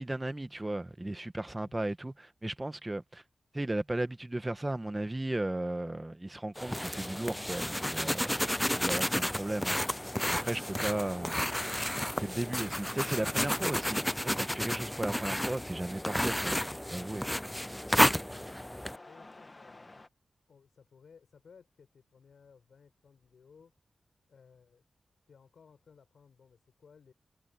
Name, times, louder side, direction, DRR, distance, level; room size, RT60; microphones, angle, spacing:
voice 1, 0.0-3.2 3.5-8.3 8.7-10.0 10.3-11.3 12.2-17.3, right 1 dB, 25° right, 1.7 m, -35 dB
sound 1, 6.6-19.0, equal, 10° left, 0.6 m, -32 dB
sound 2, 7.0-20.1, left 2 dB, 35° left, 2.3 m, -53 dB
voice 2, 17.9-20.1 20.5-23.7 24.3-27.1, left 6 dB, 85° left, 5.4 m, -59 dB
cardioid pair, 50°, 0 cm